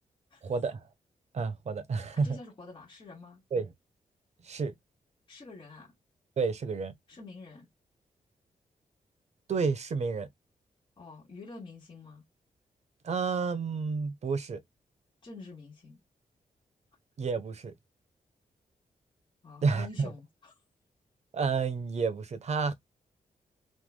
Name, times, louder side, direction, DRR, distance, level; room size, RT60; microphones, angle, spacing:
voice 1, 0.4-0.9 1.3-2.4 3.5-3.7 4.4-4.7 6.4-6.9 9.5-10.3 13.0-14.6 17.2-17.7 19.6-20.1 21.3-22.7, right 5 dB, 50° right, 1.0 m, -30 dB
voice 2, 2.1-3.4 5.3-5.9 7.1-7.7 11.0-12.2 15.2-16.0 19.4-20.5, left 3 dB, 35° left, 3.0 m, -47 dB
6.2 x 3.5 x 2.3 m
wide cardioid pair, 160°, 14 cm